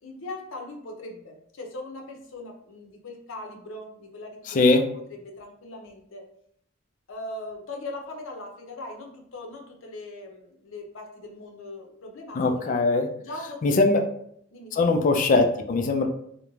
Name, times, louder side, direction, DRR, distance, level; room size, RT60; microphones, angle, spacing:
voice 1, 0.0-4.8 5.2-6.2 7.1-12.8 13.2-13.8 14.5-14.8, left 2 dB, 85° left, 2 dB, 0.6 m, -40 dB
voice 2, 4.5-4.8 12.4-13.1 13.6-14.1 14.7-16.1, left 3 dB, 40° left, 5 dB, 0.3 m, -21 dB
2.4 x 2.1 x 3.0 m, 0.69 s
head